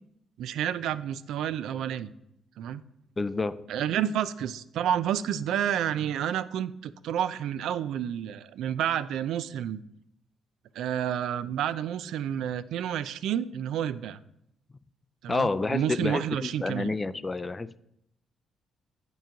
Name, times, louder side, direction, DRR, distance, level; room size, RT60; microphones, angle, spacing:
voice 1, 0.4-2.1 2.6-2.8 3.7-9.8 10.7-14.2 15.2-16.9, right 10 dB, 80° right, 15 dB, 0.3 m, -30 dB
voice 2, 3.2-3.7 15.3-17.8, left 3 dB, 25° left, 15 dB, 0.3 m, -29 dB
9.0 x 3.1 x 5.8 m, 0.78 s
cardioid pair, 90°, 0 cm